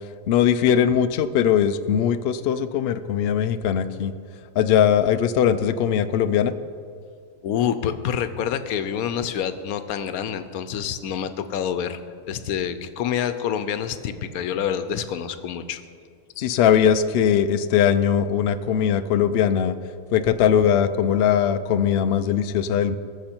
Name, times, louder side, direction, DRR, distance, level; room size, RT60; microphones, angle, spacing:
voice 1, 0.3-4.1 4.6-6.5 16.4-19.7 20.1-23.0, left 8 dB, 90° left, 11 dB, 0.5 m, -20 dB
voice 2, 7.4-12.0 12.3-15.8, left 8 dB, 70° left, 11 dB, 1.1 m, -27 dB
19.5 x 7.1 x 4.4 m, 2.2 s
omnidirectional pair, 1.7 m